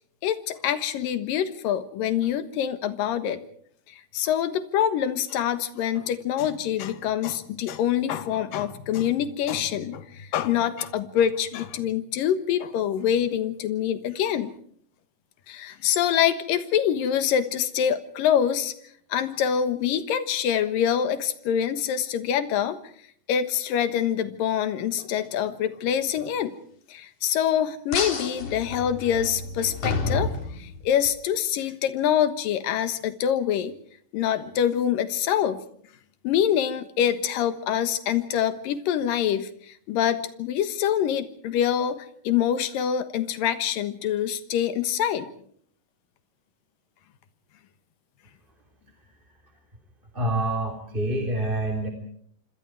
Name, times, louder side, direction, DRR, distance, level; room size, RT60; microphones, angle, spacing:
voice 1, 0.2-3.4 3.9-14.5 15.5-18.7 19.1-22.8 23.3-26.5 26.9-33.8 34.1-35.6 36.2-45.3, left 9 dB, 85° left, 11 dB, 3.0 m, -25 dB
sound 1, 27.9-31.1, left 3 dB, 55° left, 4.6 m, -30 dB
voice 2, 50.1-51.9, right 1 dB, 15° right, 2 dB, 3.2 m, -26 dB
27.0 x 26.5 x 4.7 m, 0.62 s
omnidirectional pair, 3.9 m